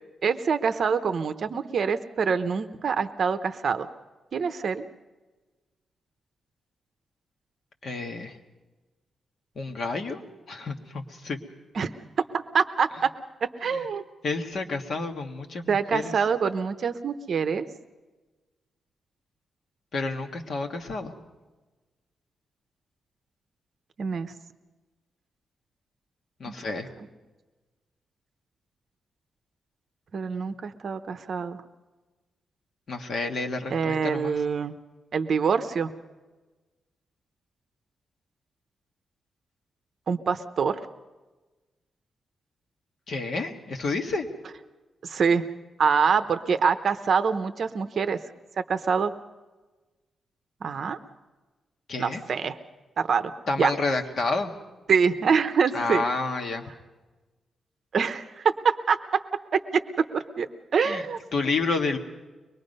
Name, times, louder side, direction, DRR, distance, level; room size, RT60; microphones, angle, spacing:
voice 1, 0.2-3.9 4.3-4.8 11.7-11.9 12.3-13.1 13.4-14.0 15.7-17.6 24.0-24.3 26.5-26.6 30.1-31.6 33.7-34.7 35.1-35.9 40.1-40.8 45.0-45.4 45.8-48.2 48.6-49.1 50.6-51.0 52.0-52.5 53.0-53.3 53.6-53.7 54.9-56.0 57.9-59.2 59.5-59.8 60.1-60.5 60.7-61.2, right 6 dB, 45° right, 10 dB, 0.8 m, -25 dB
voice 2, 7.8-8.4 9.5-10.2 10.5-11.4 13.6-13.8 14.2-16.1 19.9-21.1 26.4-26.9 32.9-34.3 43.1-44.3 51.9-52.2 53.5-54.5 55.7-56.6 60.8-61.0 61.3-62.0, left 3 dB, 45° left, 4 dB, 1.6 m, -29 dB
23.5 x 21.0 x 5.4 m, 1.2 s
wide cardioid pair, 170°, 0 cm